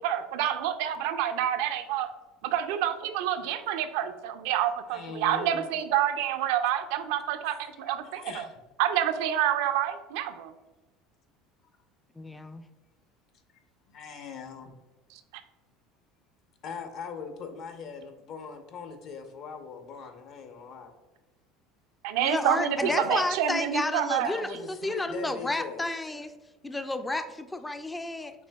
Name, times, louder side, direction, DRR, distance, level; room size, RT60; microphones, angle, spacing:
voice 1, 0.0-2.1 2.4-8.5 8.8-10.5 22.0-24.3, right 10 dB, 75° right, 8 dB, 0.4 m, -28 dB
voice 2, 4.9-5.7 7.7-8.6 13.9-14.7 16.6-20.9 22.7-23.2 24.2-25.8, left 5 dB, 55° left, 6 dB, 0.8 m, -40 dB
voice 3, 12.2-12.6 22.2-26.3 26.6-28.3, left 2 dB, 10° left, 9 dB, 0.3 m, -31 dB
6.6 x 2.7 x 2.2 m, 1.2 s
supercardioid pair, 105°, 0 cm